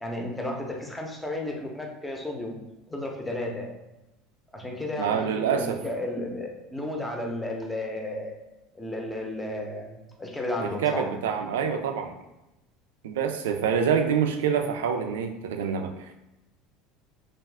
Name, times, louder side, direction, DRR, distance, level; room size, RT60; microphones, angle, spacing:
voice 1, 0.0-2.6 2.9-3.7 4.5-8.4 8.7-11.1, left 1 dB, 10° left, 1 dB, 0.7 m, -33 dB
voice 2, 5.0-5.8 10.6-12.1 13.0-15.9, right 7 dB, 85° right, 5 dB, 0.3 m, -26 dB
2.4 x 2.3 x 3.3 m, 0.94 s
hypercardioid pair, 90°, 0 cm